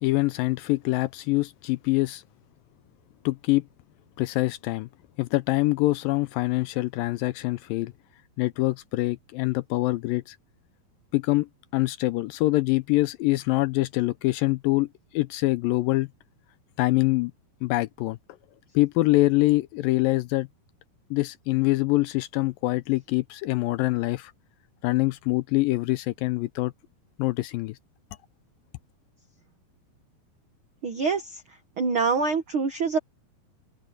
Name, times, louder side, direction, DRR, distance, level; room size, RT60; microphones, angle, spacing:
voice 1, 0.0-2.2 3.3-3.6 4.2-4.9 5.2-7.9 8.4-10.4 11.1-11.5 11.7-14.9 15.1-16.1 16.8-17.3 17.6-18.2 18.8-20.5 21.1-24.3 24.8-26.7 27.2-27.8, left 20 dB, 80° left, 2.1 m, -24 dB
voice 2, 30.8-31.4 31.8-33.0, right 4 dB, 90° right, 1.1 m, -25 dB
omnidirectional pair, 4.4 m